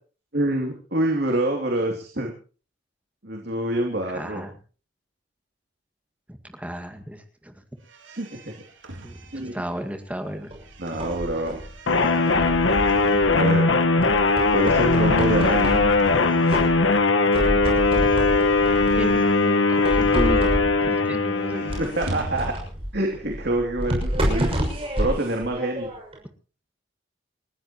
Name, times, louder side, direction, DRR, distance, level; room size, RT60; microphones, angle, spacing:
voice 1, 0.3-2.3 3.2-4.4 8.0-8.5 9.3-9.5 10.8-11.6 13.4-13.7 14.5-15.8 21.6-22.5 22.9-24.5 25.0-25.9, right 1 dB, 55° right, 1 dB, 2.8 m, -26 dB
voice 2, 4.1-4.5 6.3-7.5 9.0-9.1 9.5-10.5 18.9-20.5 20.8-21.6, equal, 5° right, 6 dB, 1.9 m, -33 dB
sound 1, 7.8-17.1 17.4-20.8 21.1-23.0, right 2 dB, 80° right, 3.0 m, -42 dB
sound 2, 10.5-11.7 12.3-13.6 14.0-16.2 16.5-17.0 17.3-19.3 19.8-20.9 21.7-26.2, equal, 30° right, 6.3 m, -29 dB
sound 3, 11.9-22.1, left 3 dB, 85° left, 1.4 m, -20 dB
29.5 x 14.5 x 3.0 m, 0.38 s
head